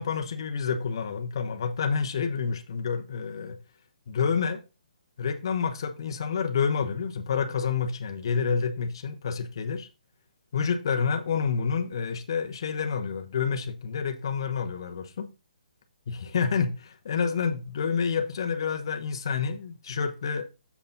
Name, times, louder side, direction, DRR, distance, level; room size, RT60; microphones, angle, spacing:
voice 1, 0.0-3.6 4.1-4.6 5.2-9.9 10.5-15.3 16.1-20.4, left 6 dB, 35° left, 1.1 m, -28 dB
7.1 x 6.7 x 3.9 m
hypercardioid pair, 180°, 4 cm